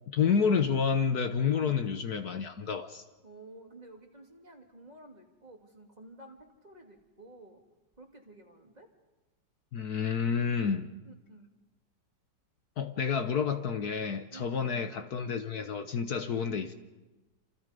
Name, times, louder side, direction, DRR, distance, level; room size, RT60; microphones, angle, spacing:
voice 1, 0.1-3.0 9.7-10.9 12.8-16.7, left 6 dB, 60° left, 8 dB, 1.6 m, -29 dB
voice 2, 3.2-7.6 8.0-8.9 11.0-11.5 14.3-14.9, right 2 dB, 20° right, 2 dB, 2.9 m, -52 dB
29.0 x 27.0 x 5.3 m, 1.1 s
omnidirectional pair, 1.9 m